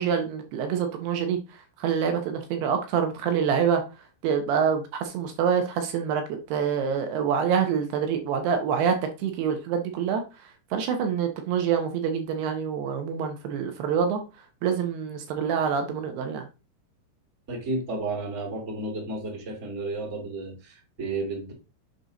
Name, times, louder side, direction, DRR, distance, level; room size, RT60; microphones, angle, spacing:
voice 1, 0.0-1.4 1.8-3.8 4.2-9.0 9.2-14.2 14.6-16.4, right 7 dB, 75° right, 6 dB, 2.5 m, -26 dB
voice 2, 17.5-21.5, right 2 dB, 35° right, -1 dB, 1.1 m, -32 dB
7.8 x 5.4 x 4.0 m, 0.29 s
omnidirectional pair, 6.0 m